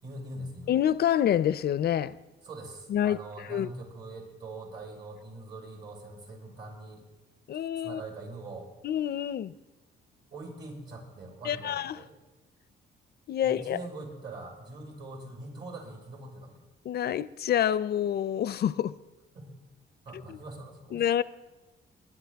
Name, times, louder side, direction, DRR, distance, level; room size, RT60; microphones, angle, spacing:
voice 1, 0.0-0.7 2.4-7.0 7.8-8.7 10.3-12.1 13.4-16.6 19.3-19.5 20.0-21.2, right 2 dB, 60° right, 5.1 m, -43 dB
voice 2, 0.7-2.1 2.9-3.2 3.5-3.7 7.5-8.0 8.8-9.5 11.4-12.0 13.3-13.8 16.9-18.9 20.3-20.4 20.9-21.2, left 10 dB, 55° left, 0.5 m, -27 dB
22.0 x 10.5 x 3.5 m
cardioid pair, 90°, 20 cm